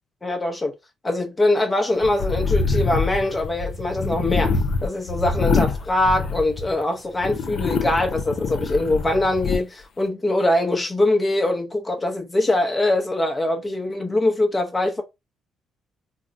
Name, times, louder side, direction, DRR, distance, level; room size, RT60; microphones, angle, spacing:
voice 1, 0.2-0.7 1.0-15.0, left 1 dB, 20° left, 0.7 m, -22 dB
sound 1, 2.0-6.8 7.2-9.6, left 4 dB, 65° left, 0.5 m, -25 dB
3.5 x 2.1 x 2.6 m
cardioid pair, 90°, 0 cm